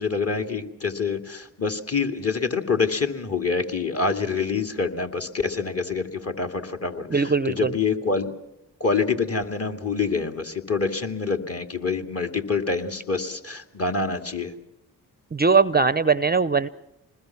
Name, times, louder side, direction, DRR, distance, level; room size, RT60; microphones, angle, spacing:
voice 1, 0.0-8.3 8.8-14.5, left 4 dB, 35° left, 6 dB, 2.5 m, -26 dB
voice 2, 7.1-7.7 15.3-16.7, right 4 dB, 25° right, 16 dB, 0.7 m, -20 dB
26.5 x 20.5 x 5.9 m, 0.89 s
hypercardioid pair, 40°, 41 cm